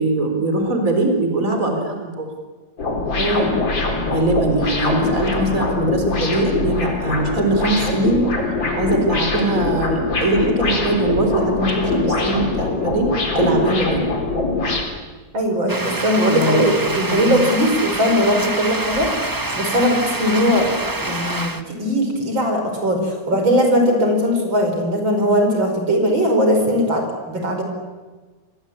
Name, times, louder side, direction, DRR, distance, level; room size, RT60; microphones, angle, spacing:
voice 1, 0.0-2.3 4.0-14.0 16.3-16.6 17.0-17.4, right 2 dB, 45° right, 3 dB, 4.4 m, -21 dB
sound 1, 2.8-14.8, left 3 dB, 80° left, 4.5 m, -22 dB
voice 2, 3.2-3.5 15.3-19.1 19.6-20.7 21.0-27.6, equal, 85° right, 4 dB, 5.8 m, -19 dB
sound 2, 15.7-21.6, right 2 dB, 15° right, 1.1 m, -26 dB
28.5 x 23.0 x 8.8 m, 1.3 s
omnidirectional pair, 2.1 m